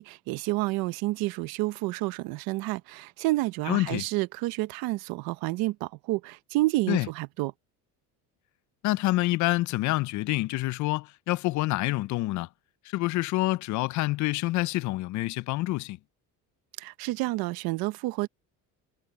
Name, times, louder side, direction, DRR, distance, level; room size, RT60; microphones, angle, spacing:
voice 1, 0.0-7.5 16.8-18.3, right 20 dB, 80° right, 1.1 m, -29 dB
voice 2, 3.7-4.0 6.9-7.1 8.8-12.5 12.9-16.0, left 18 dB, 55° left, 0.5 m, -27 dB
cardioid pair, 135°, 35 cm